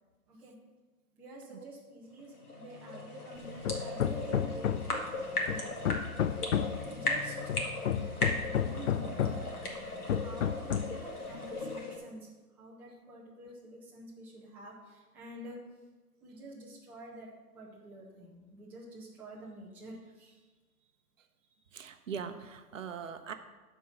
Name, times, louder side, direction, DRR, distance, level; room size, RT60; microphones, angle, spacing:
voice 1, 1.1-5.0 5.5-5.8 6.9-7.4 8.4-9.6 10.1-15.6 16.2-20.4, right 1 dB, 5° right, -5 dB, 0.6 m, -48 dB
sound 1, 2.1-12.0, left 2 dB, 75° left, 2.0 m, -37 dB
Hammer, 3.6-5.0 5.5-6.9 7.5-9.5 10.1-11.0, left 9 dB, 55° left, 0.5 m, -31 dB
voice 2, 21.7-23.3, right 6 dB, 55° right, 8 dB, 0.8 m, -40 dB
12.0 x 4.6 x 5.7 m, 1.3 s
figure-of-eight pair, 130°, 45 cm